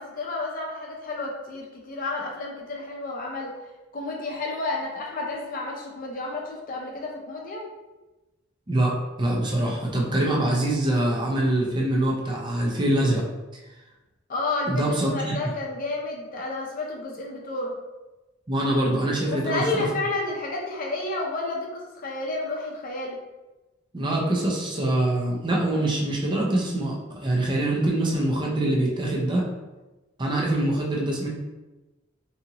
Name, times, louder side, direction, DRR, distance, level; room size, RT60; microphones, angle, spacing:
voice 1, 0.0-3.5 3.9-7.6 14.3-17.7 19.3-23.2, left 2 dB, 45° left, -2 dB, 0.6 m, -31 dB
voice 2, 8.7-13.2 14.7-15.5 18.5-19.9 23.9-29.5 30.2-31.3, right 1 dB, 25° right, -2 dB, 0.5 m, -24 dB
2.7 x 2.5 x 2.8 m, 1.1 s
head